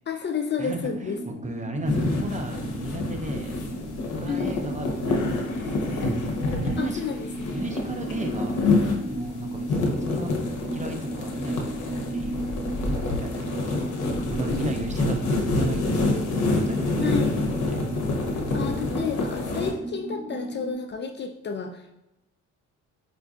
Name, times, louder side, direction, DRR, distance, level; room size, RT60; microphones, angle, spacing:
voice 1, 0.1-1.2 4.3-4.9 6.8-7.6 14.5-14.9 17.0-17.3 18.5-22.0, left 5 dB, 35° left, 5 dB, 0.4 m, -31 dB
voice 2, 0.6-3.6 4.1-6.1 6.5-7.0 7.5-10.3 10.7-11.6 12.0-12.4 12.8-13.6 14.3-17.2 17.7-17.9, right 2 dB, 25° right, 4 dB, 0.5 m, -35 dB
sound 1, 0.8-20.7, right 1 dB, 10° left, 1.5 m, -36 dB
sound 2, 1.8-19.7, left 2 dB, 80° left, 0.8 m, -27 dB
5.1 x 2.4 x 2.4 m, 0.91 s
cardioid pair, 90°, 30 cm